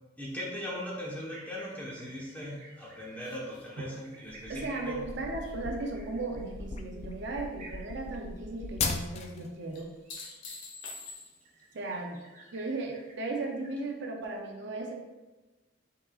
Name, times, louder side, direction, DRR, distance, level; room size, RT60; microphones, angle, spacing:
voice 1, 0.2-5.0, equal, 10° left, -5 dB, 1.1 m, -39 dB
sound 1, 1.3-13.9, right 2 dB, 40° right, 0.9 m, -55 dB
sound 2, 3.2-6.7 7.0-7.6 9.7-11.6 14.2-14.3, left 3 dB, 70° left, 0.9 m, -48 dB
sound 3, 4.3-9.5, left 4 dB, 35° left, 0.3 m, -37 dB
voice 2, 4.5-9.9 11.7-12.2 12.5-14.9, right 2 dB, 60° right, 1 dB, 0.6 m, -36 dB
5.5 x 3.7 x 2.4 m, 1.1 s
head